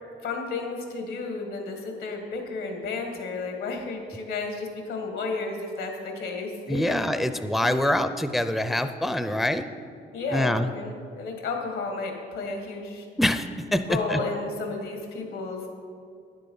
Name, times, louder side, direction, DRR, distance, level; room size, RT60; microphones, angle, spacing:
voice 1, 0.2-7.0 7.6-7.9 10.1-13.1 13.8-15.7, left 3 dB, 85° left, 3 dB, 2.0 m, -32 dB
voice 2, 6.7-9.6 10.3-10.7 13.2-14.2, left 1 dB, ahead, 9 dB, 0.4 m, -25 dB
9.8 x 7.7 x 5.5 m, 2.3 s
cardioid pair, 90°, 20 cm